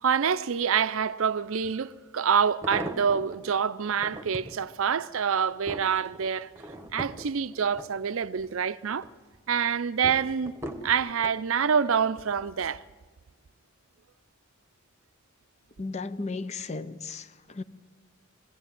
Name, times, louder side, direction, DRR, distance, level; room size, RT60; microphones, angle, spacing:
voice 1, 0.0-6.5 6.9-9.1 9.5-10.5 10.8-12.8, right 7 dB, 70° right, 0.5 m, -26 dB
sound 1, 1.6-1.7 2.4-3.4 3.9-4.6 5.1-8.5 8.9-9.4 10.0-11.4 12.2-12.5 12.8-12.9, right 1 dB, 10° right, 1.2 m, -40 dB
voice 2, 15.8-17.6, left 3 dB, 30° left, 0.6 m, -35 dB
20.5 x 15.5 x 9.2 m
head